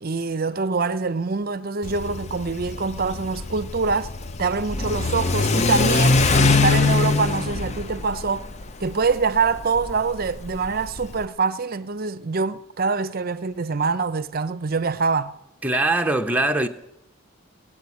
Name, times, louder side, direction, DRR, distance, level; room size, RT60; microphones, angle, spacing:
voice 1, 0.0-4.1 4.4-8.5 8.8-15.3, right 4 dB, 40° right, 0.6 m, -25 dB
Car / Accelerating revving vroom, 1.8-11.2, left 3 dB, 30° left, 0.5 m, -23 dB
voice 2, 15.6-16.7, right 2 dB, 5° right, 0.8 m, -21 dB
17.5 x 8.5 x 9.5 m
head